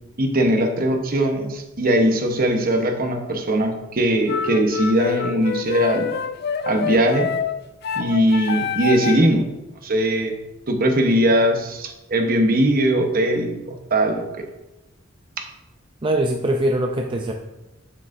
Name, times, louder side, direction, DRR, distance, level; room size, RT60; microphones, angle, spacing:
voice 1, 0.2-6.1 6.6-7.3 8.0-9.5 9.8-10.3 10.7-14.4 15.4-15.5, right 1 dB, 45° right, 4 dB, 1.0 m, -20 dB
sound 1, 4.3-9.4, left 6 dB, 50° left, 0.3 m, -27 dB
voice 2, 16.0-17.3, right 1 dB, 25° right, 2 dB, 0.4 m, -22 dB
8.8 x 7.1 x 2.6 m, 0.98 s
head